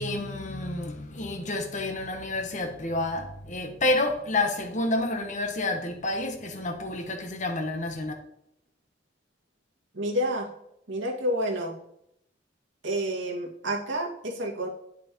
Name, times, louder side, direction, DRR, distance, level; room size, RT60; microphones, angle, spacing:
voice 1, 0.0-8.1, left 2 dB, 45° left, 4 dB, 1.3 m, -29 dB
voice 2, 9.9-10.5 10.9-11.7 12.8-14.7, equal, 90° right, -1 dB, 2.2 m, -29 dB
11.0 x 6.3 x 3.0 m, 0.76 s
head